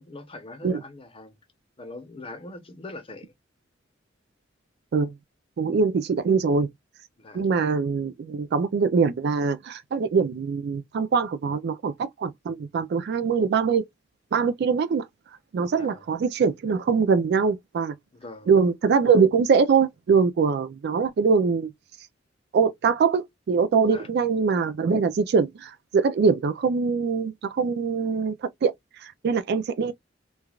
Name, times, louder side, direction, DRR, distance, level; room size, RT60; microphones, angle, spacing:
voice 1, 0.0-1.4 1.8-3.3 7.2-7.5 15.7-16.0 18.1-18.5 23.9-24.1, left 2 dB, 30° left, 0.8 m, -42 dB
voice 2, 5.6-6.7 7.3-13.8 14.3-15.1 15.5-17.9 18.5-21.7 22.5-28.7 29.0-29.9, right 5 dB, 60° right, 0.3 m, -23 dB
3.2 x 2.3 x 2.3 m
head